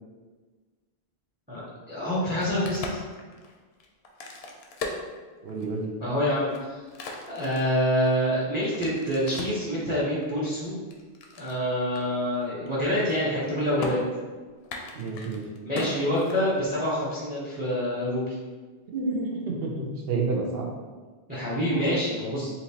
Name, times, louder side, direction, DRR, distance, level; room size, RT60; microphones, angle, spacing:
voice 1, 1.5-3.0 6.0-6.8 7.3-10.8 11.4-14.0 15.6-18.4 21.3-22.5, equal, 10° right, -7 dB, 0.7 m, -26 dB
Crack, 2.2-5.8 6.3-9.7 10.2-11.6 12.0-12.1 12.3-12.7 12.9-13.5 13.8-13.9 14.6-16.8, left 3 dB, 80° left, 0.8 m, -38 dB
voice 2, 5.4-5.9 14.9-15.5 18.9-20.7, right 3 dB, 70° right, 0 dB, 0.9 m, -29 dB
4.0 x 2.8 x 2.8 m, 1.4 s
omnidirectional pair, 1.0 m